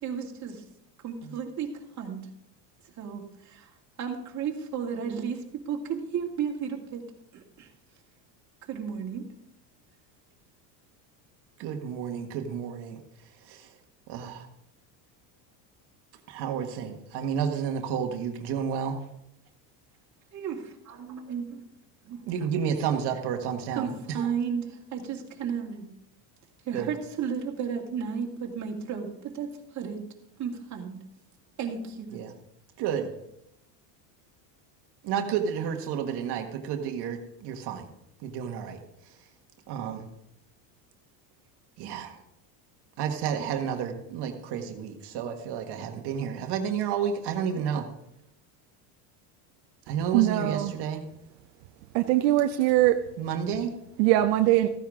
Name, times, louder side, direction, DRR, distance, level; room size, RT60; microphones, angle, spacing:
voice 1, 0.0-0.6 1.0-1.7 2.0-2.2 3.0-3.7 4.0-7.0 7.3-7.7 8.7-9.2 20.3-21.6 22.0-22.2 23.8-25.8 26.7-30.0 30.4-30.9 31.6-32.1, right 7 dB, 35° right, 0 dB, 2.4 m, -33 dB
voice 2, 11.6-13.0 13.4-13.7 14.1-14.5 16.3-19.0 22.3-24.3 26.7-26.9 32.1-32.3 32.8-33.1 35.0-37.9 38.2-39.2 39.7-40.1 41.8-42.2 43.0-47.9 49.9-51.0 53.2-53.7, right 7 dB, 55° right, 4 dB, 1.6 m, -31 dB
voice 3, 50.1-50.7 51.9-53.0 54.0-54.7, right 15 dB, 80° right, 6 dB, 0.9 m, -22 dB
15.0 x 10.0 x 3.7 m, 0.80 s
supercardioid pair, 135°, 49 cm